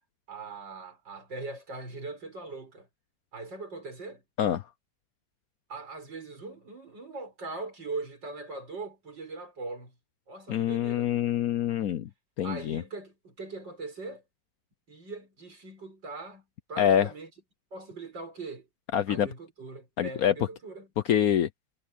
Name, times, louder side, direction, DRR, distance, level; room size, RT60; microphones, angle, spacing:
voice 1, 0.3-2.9 3.3-4.2 5.7-10.0 10.3-11.2 12.4-14.2 14.9-17.3 17.7-18.7 19.1-20.9, right 3 dB, 75° right, 6.9 m, -41 dB
voice 2, 10.5-12.1 12.4-12.8 16.8-17.1 18.9-19.3 20.0-20.3 21.1-21.5, left 9 dB, 65° left, 1.0 m, -25 dB
omnidirectional pair, 2.0 m